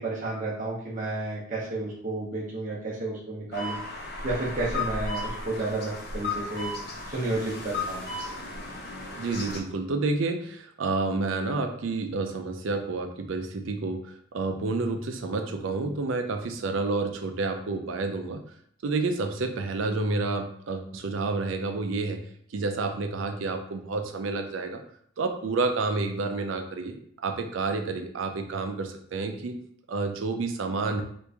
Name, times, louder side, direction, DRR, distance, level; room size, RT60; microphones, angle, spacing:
voice 1, 0.0-3.8 4.2-6.7 7.1-8.0, right 2 dB, 40° right, -6 dB, 0.7 m, -31 dB
sound 1, 3.5-9.6, left 2 dB, 50° left, 0.7 m, -35 dB
voice 2, 9.2-18.4 18.8-22.3 22.5-24.8 25.2-29.6 29.9-31.0, right 3 dB, 80° right, 5 dB, 0.5 m, -29 dB
3.0 x 2.5 x 3.4 m, 0.63 s
head